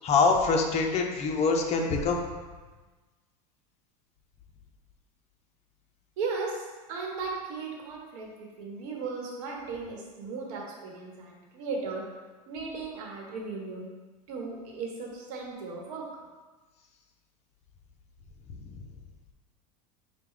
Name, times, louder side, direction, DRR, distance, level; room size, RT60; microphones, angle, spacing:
voice 1, 0.0-2.2, left 4 dB, 35° left, 2 dB, 0.5 m, -24 dB
voice 2, 6.2-6.6 6.9-12.0 12.5-13.9 14.3-16.0, right 4 dB, 70° right, -1 dB, 1.1 m, -36 dB
4.5 x 2.2 x 3.6 m, 1.3 s
supercardioid pair, 125°, 20 cm